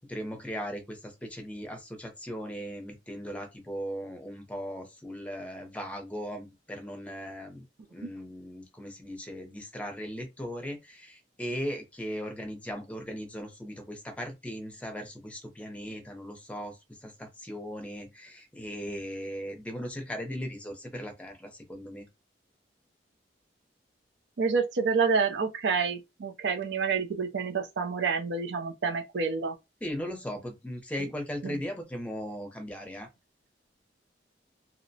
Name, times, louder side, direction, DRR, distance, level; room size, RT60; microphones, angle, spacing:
voice 1, 0.0-22.1 29.8-33.1, equal, 10° left, 0.6 m, -38 dB
voice 2, 24.4-29.5 31.0-31.1 31.4-31.6, right 5 dB, 80° right, 0.5 m, -28 dB
2.7 x 2.1 x 2.7 m
head